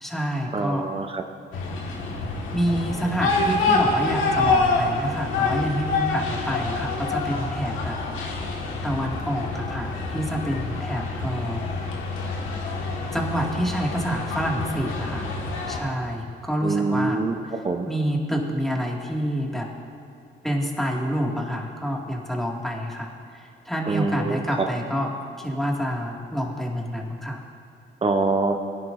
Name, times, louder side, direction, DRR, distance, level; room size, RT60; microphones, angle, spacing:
voice 1, 0.0-0.9 2.5-8.4 8.8-11.7 13.1-15.3 15.7-17.2 17.5-19.7 20.4-25.1 25.4-27.4, equal, ahead, -2 dB, 2.1 m, -28 dB
voice 2, 0.5-1.2 16.6-17.3 17.6-17.9 23.9-24.4 28.0-28.6, right 3 dB, 30° right, 5 dB, 0.8 m, -24 dB
sound 1, 1.5-15.8, left 3 dB, 90° left, 1.8 m, -27 dB
21.5 x 10.5 x 2.6 m, 2.6 s
cardioid pair, 90°, 20 cm